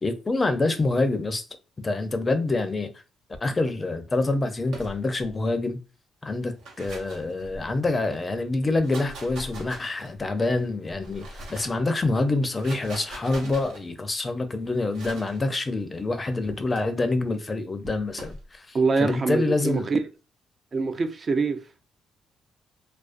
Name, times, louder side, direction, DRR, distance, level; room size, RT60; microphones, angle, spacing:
voice 1, 0.0-1.4 1.8-2.9 3.4-5.8 6.2-19.9, left 2 dB, 25° left, 0.4 m, -26 dB
sound 1, 4.7-5.3 6.4-7.9 8.6-10.3 10.9-11.8 12.4-13.8 14.9-15.4 16.4-16.8 17.8-18.4, right 1 dB, 85° right, 0.8 m, -42 dB
voice 2, 18.7-20.0 20.7-21.6, right 4 dB, 40° right, 0.3 m, -24 dB
2.4 x 2.2 x 2.4 m
cardioid pair, 90°, 0 cm